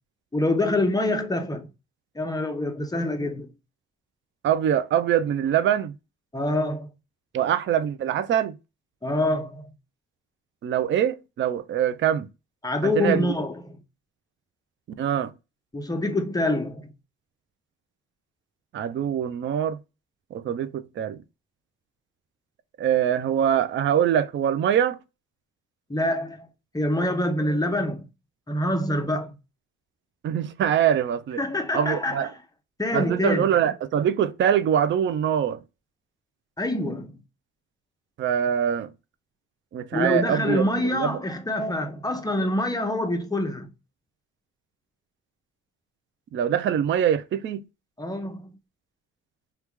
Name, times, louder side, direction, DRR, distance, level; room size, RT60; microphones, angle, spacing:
voice 1, 0.3-1.7 2.2-3.5 6.3-6.9 9.0-9.7 12.6-13.8 15.7-16.9 25.9-26.5 26.7-28.1 28.5-29.3 31.4-32.3 32.8-33.5 36.6-37.1 39.9-43.7 48.0-48.5, left 1 dB, 10° left, 0.7 m, -26 dB
voice 2, 4.4-5.9 7.3-8.6 10.6-12.3 12.8-13.3 15.0-15.3 18.7-19.8 20.3-21.2 22.8-25.0 30.2-31.4 31.7-32.3 32.9-35.6 38.2-38.9 39.7-41.2 46.3-47.6, right 9 dB, 40° right, 0.4 m, -23 dB
2.9 x 2.3 x 3.5 m
cardioid pair, 90°, 30 cm